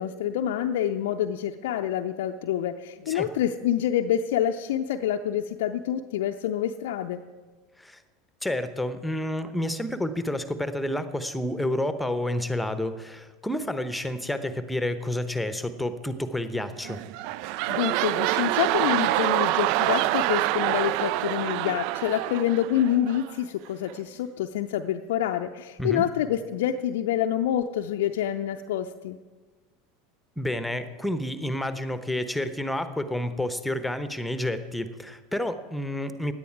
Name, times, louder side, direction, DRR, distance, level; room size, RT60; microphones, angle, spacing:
voice 1, 0.0-7.2 17.7-29.2, left 10 dB, 60° left, 4 dB, 0.5 m, -27 dB
voice 2, 8.4-17.0 25.8-26.0 30.4-36.3, left 1 dB, 5° left, 11 dB, 1.0 m, -29 dB
sound 1, 16.8-23.4 23.9-24.0, right 16 dB, 55° right, 0.3 m, -26 dB
17.0 x 10.5 x 4.7 m, 1.3 s
figure-of-eight pair, 75°, 0 cm